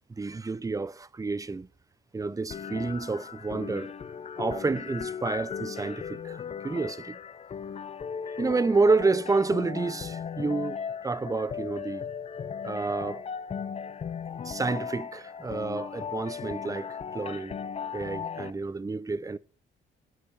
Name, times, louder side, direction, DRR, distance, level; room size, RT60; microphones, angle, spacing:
voice 1, 0.2-1.7 2.1-3.9 4.4-7.2 8.4-12.0 12.6-13.2 14.4-17.6 17.9-19.4, right 3 dB, 15° right, 0.6 m, -29 dB
sound 1, 2.5-18.5, left 7 dB, 30° left, 0.4 m, -37 dB
8.2 x 6.5 x 5.7 m
cardioid pair, 90°, 20 cm